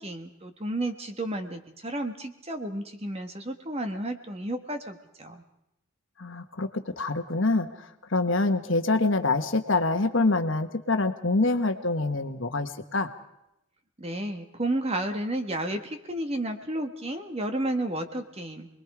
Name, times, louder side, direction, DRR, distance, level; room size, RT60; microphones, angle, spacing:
voice 1, 0.0-5.4 14.0-18.7, right 1 dB, 30° right, 6 dB, 1.5 m, -32 dB
voice 2, 6.2-13.1, left 3 dB, 60° left, 7 dB, 1.3 m, -26 dB
29.0 x 21.0 x 4.9 m, 0.83 s
head